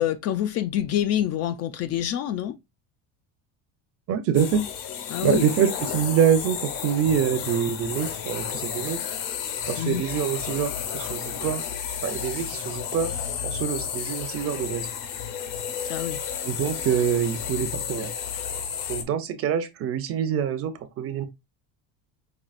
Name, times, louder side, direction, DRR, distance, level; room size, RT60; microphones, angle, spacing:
voice 1, 0.0-2.6 5.1-5.4 9.8-10.0 15.8-16.2, left 11 dB, 45° left, 0.4 m, -26 dB
voice 2, 4.1-4.7 5.2-9.0 9.7-11.6 12.0-13.1 13.4-14.9 16.4-18.1 18.9-21.3, right 8 dB, 40° right, 0.6 m, -25 dB
sound 1, 4.3-19.0, left 8 dB, 60° left, 1.0 m, -32 dB
5.5 x 2.8 x 2.4 m
cardioid pair, 155°, 38 cm